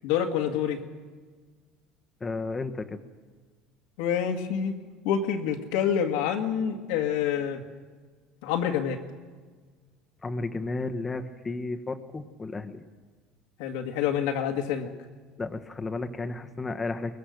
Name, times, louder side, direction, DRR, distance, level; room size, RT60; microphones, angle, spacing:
voice 1, 0.0-0.8 4.0-4.7 5.0-7.6 8.4-9.0 13.6-14.9, left 8 dB, 80° left, 3 dB, 2.1 m, -27 dB
voice 2, 2.2-3.0 10.2-12.8 15.4-17.2, left 3 dB, 20° left, 6 dB, 1.3 m, -33 dB
22.5 x 19.5 x 6.6 m, 1.5 s
supercardioid pair, 95°, 0 cm